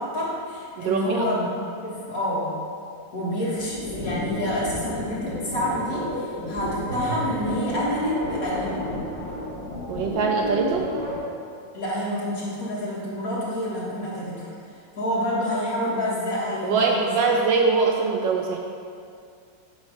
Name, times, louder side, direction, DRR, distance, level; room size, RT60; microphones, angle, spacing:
voice 1, 0.0-1.5 1.8-2.5 3.1-8.8 11.7-17.4, equal, 45° left, -7 dB, 2.0 m, -28 dB
voice 2, 0.8-1.3 3.2-3.3 9.9-10.9 16.6-18.6, right 4 dB, 70° right, 1 dB, 1.2 m, -23 dB
sound 1, 3.6-11.2, left 1 dB, 15° right, 1.5 m, -31 dB
9.2 x 3.2 x 6.5 m, 2.4 s
omnidirectional pair, 2.3 m